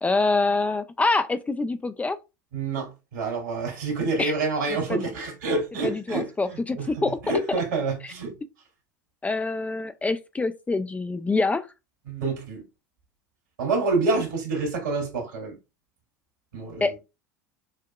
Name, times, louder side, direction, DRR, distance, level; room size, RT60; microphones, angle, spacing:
voice 1, 0.0-2.2 4.2-4.3 4.7-5.1 5.8-7.2 8.0-8.1 9.2-11.7 16.8-17.0, left 3 dB, 15° left, 0.4 m, -25 dB
voice 2, 2.5-6.9 7.2-8.3 12.1-12.6 13.6-15.5 16.5-16.9, right 3 dB, 75° right, 2.6 m, -27 dB
6.6 x 2.8 x 2.2 m
figure-of-eight pair, 75°, 10 cm